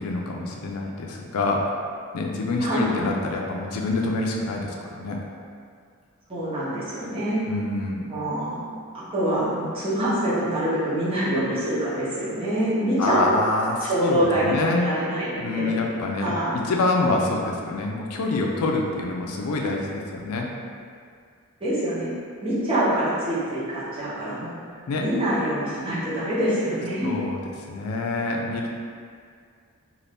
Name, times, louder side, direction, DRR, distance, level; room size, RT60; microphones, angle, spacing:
voice 1, 0.0-1.7 2.1-5.2 7.5-8.1 13.0-14.9 15.4-20.5 24.9-25.1 27.0-28.7, left 2 dB, 85° left, 0 dB, 0.4 m, -26 dB
voice 2, 2.6-3.0 6.3-7.5 8.1-8.6 8.9-13.3 13.8-15.8 16.2-16.6 21.6-22.1 22.4-24.5 25.0-27.1, right 1 dB, 25° right, -11 dB, 0.9 m, -25 dB
2.6 x 2.5 x 3.4 m, 2.2 s
head